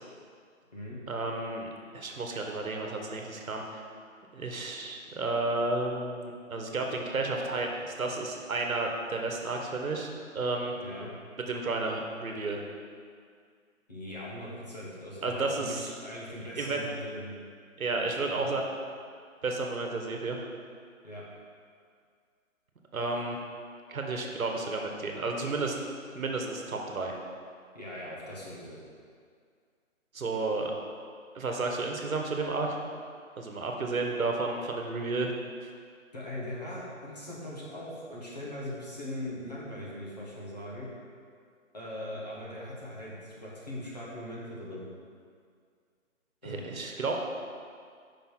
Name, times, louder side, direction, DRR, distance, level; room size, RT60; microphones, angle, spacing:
voice 1, 1.1-3.8 4.3-10.7 11.5-12.6 15.2-15.9 16.6-16.9 17.8-18.6 19.4-20.4 22.9-23.4 23.9-25.7 26.1-27.2 30.1-30.7 31.3-32.8 33.4-35.3 46.4-47.2, right 3 dB, 85° right, 2 dB, 1.2 m, -32 dB
voice 2, 13.9-17.3 18.2-18.6 21.0-21.2 27.7-28.8 36.1-40.9 41.7-44.9 46.4-46.7, left 1 dB, 30° left, -6 dB, 1.2 m, -40 dB
5.9 x 5.3 x 4.5 m, 2.1 s
hypercardioid pair, 180°, 41 cm